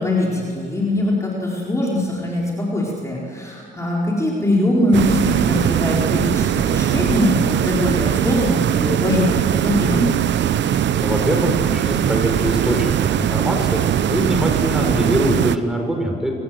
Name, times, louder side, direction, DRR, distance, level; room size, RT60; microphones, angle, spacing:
voice 1, 0.0-10.1, left 1 dB, 15° left, -4 dB, 4.6 m, -21 dB
sound 1, 4.9-15.6, right 10 dB, 65° right, 0.8 m, -20 dB
voice 2, 10.9-12.9 13.2-16.3, equal, ahead, 2 dB, 5.2 m, -23 dB
28.0 x 18.0 x 7.8 m, 2.3 s
cardioid pair, 90°, 20 cm